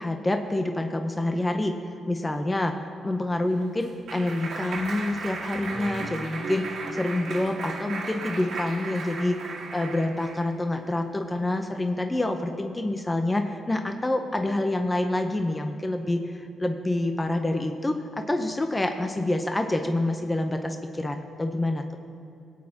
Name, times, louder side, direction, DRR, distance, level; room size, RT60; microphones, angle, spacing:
voice 1, 0.0-1.8 2.1-9.4 9.7-22.0, left 1 dB, 20° left, 5 dB, 0.7 m, -27 dB
Clapping, 3.2-10.5, right 3 dB, 75° right, 1.7 m, -36 dB
19.5 x 8.6 x 2.9 m, 2.5 s
cardioid pair, 80°, 0 cm